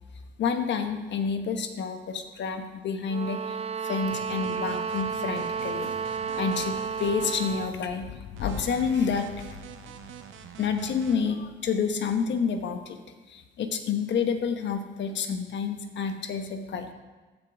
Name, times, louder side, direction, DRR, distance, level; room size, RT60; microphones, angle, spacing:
voice 1, 0.4-3.6 3.8-8.1 8.4-9.3 10.6-13.0 13.3-16.9, left 6 dB, 65° left, 6 dB, 1.1 m, -29 dB
sound 1, 3.1-7.8, right 6 dB, 30° right, 0.4 m, -32 dB
Thunder / Rain, 4.1-12.3, left 9 dB, 85° left, 0.5 m, -44 dB
sound 2, 4.1-7.5 8.4-11.2, right 8 dB, 85° right, 0.7 m, -45 dB
15.0 x 5.3 x 3.5 m, 1.3 s
cardioid pair, 90°, 20 cm